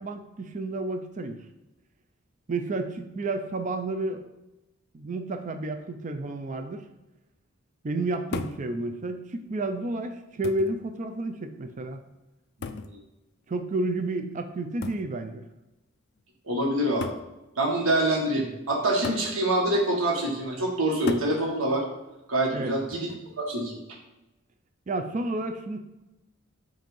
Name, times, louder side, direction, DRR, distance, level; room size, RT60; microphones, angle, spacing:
voice 1, 0.0-1.4 2.5-4.3 4.9-6.9 7.8-12.0 13.5-15.5 22.5-22.7 24.9-25.8, right 2 dB, 35° right, 6 dB, 0.5 m, -31 dB
sound 1, 8.3-8.7 9.7-9.8 10.4-10.8 12.6-13.0 14.8-15.1 16.2-16.3 17.0-17.3 19.0-19.3 21.1-21.4 22.9-23.3, left 4 dB, 55° left, 0.4 m, -35 dB
voice 2, 12.6-13.0 16.5-17.1 17.6-21.8 22.3-23.1 23.4-23.8, right 1 dB, 80° right, 0 dB, 1.6 m, -26 dB
7.7 x 2.6 x 5.4 m, 0.99 s
head